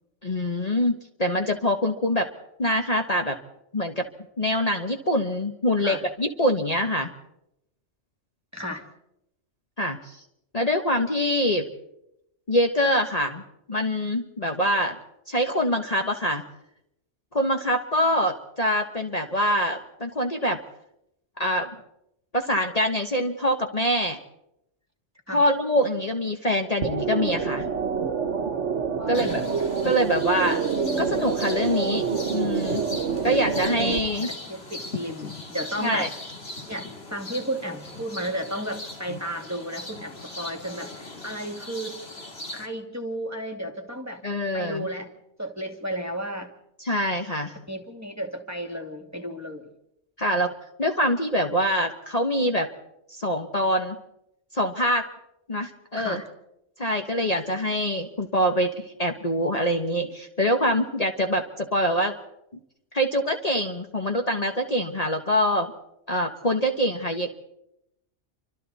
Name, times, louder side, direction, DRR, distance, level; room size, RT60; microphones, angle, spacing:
voice 1, 0.2-2.3 2.6-3.4 3.7-4.0 4.4-7.1 9.8-10.2 10.5-11.7 12.5-13.4 13.7-15.0 15.3-16.4 17.3-20.6 21.4-21.7 22.3-24.2 25.3-27.7 29.1-29.4 29.8-30.7 31.0-32.0 32.3-32.8 33.2-34.3 35.8-36.1 44.2-44.9 46.8-47.5 50.2-50.5 50.8-52.7 53.1-54.0 54.5-55.1 55.5-56.2 56.8-62.1 62.9-65.7 66.1-67.3, equal, 35° left, 4 dB, 1.4 m, -24 dB
voice 2, 8.5-8.8 25.3-25.5 29.0-29.3 34.2-36.1 36.7-42.0 42.5-44.2 44.5-45.1 45.4-46.5 47.7-49.7 55.9-56.3, equal, 15° right, 5 dB, 2.5 m, -33 dB
sound 1, 26.8-34.0, right 6 dB, 70° right, 1.4 m, -27 dB
sound 2, 29.1-42.7, left 2 dB, 55° left, 2.8 m, -39 dB
29.0 x 25.5 x 4.2 m, 0.84 s
omnidirectional pair, 1.2 m